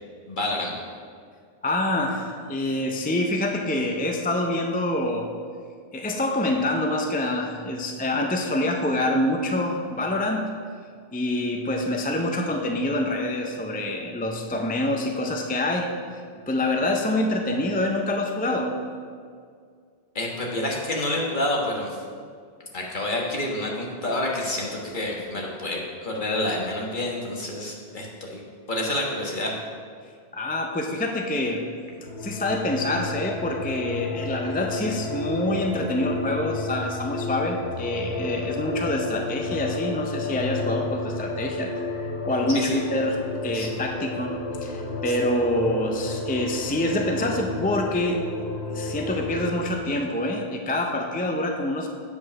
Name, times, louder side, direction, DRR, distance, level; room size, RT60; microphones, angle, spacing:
voice 1, 0.3-0.7 20.1-22.0 22.7-28.4 28.7-29.5 42.5-42.8 43.5-43.7 45.1-45.2, left 1 dB, 50° left, -2 dB, 1.5 m, -28 dB
voice 2, 1.6-5.3 5.9-10.5 11.1-15.9 16.5-18.8 30.3-31.7 32.2-48.2 48.7-51.9, left 1 dB, 10° left, 2 dB, 0.4 m, -26 dB
sound 1, 32.0-49.5, left 2 dB, 90° left, 1.2 m, -32 dB
8.3 x 5.0 x 6.0 m, 2.1 s
omnidirectional pair, 1.1 m